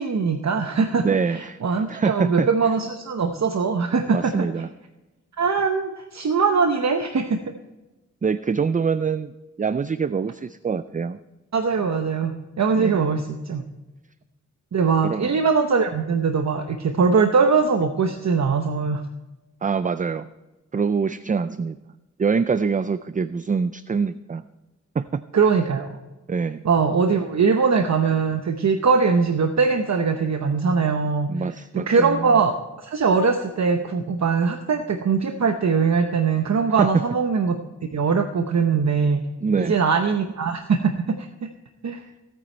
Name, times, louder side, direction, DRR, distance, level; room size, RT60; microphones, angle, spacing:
voice 1, 0.0-1.0 1.3-4.3 5.4-7.4 11.5-13.6 14.7-19.0 25.3-26.0 26.6-31.5 31.9-37.6 37.9-39.2 39.6-40.9 41.2-41.3 41.8-42.0, right 5 dB, 65° right, 6 dB, 0.8 m, -21 dB
voice 2, 1.0-1.6 1.9-2.5 4.1-4.7 8.2-9.3 9.6-11.2 12.8-13.0 15.0-15.3 19.6-20.3 20.7-21.8 22.2-24.4 25.0-25.2 26.3-26.6 31.3-32.3 36.8-37.0 39.4-39.8, right 5 dB, 30° right, 13 dB, 0.3 m, -24 dB
16.0 x 9.3 x 4.4 m, 1.1 s
wide cardioid pair, 125°, 30 cm